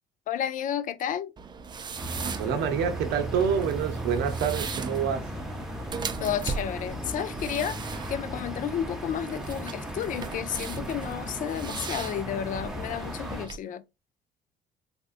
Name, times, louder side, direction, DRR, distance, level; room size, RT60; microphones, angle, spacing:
voice 1, 0.3-1.3 6.2-13.8, left 9 dB, 50° left, 0.4 m, -32 dB
sound 1, 1.4-13.6, right 5 dB, 25° right, 0.4 m, -39 dB
sound 2, 2.0-13.5, right 1 dB, ahead, 0.7 m, -36 dB
voice 2, 2.4-5.3, right 7 dB, 80° right, 0.7 m, -27 dB
3.4 x 2.6 x 2.4 m
cardioid pair, 110°, 17 cm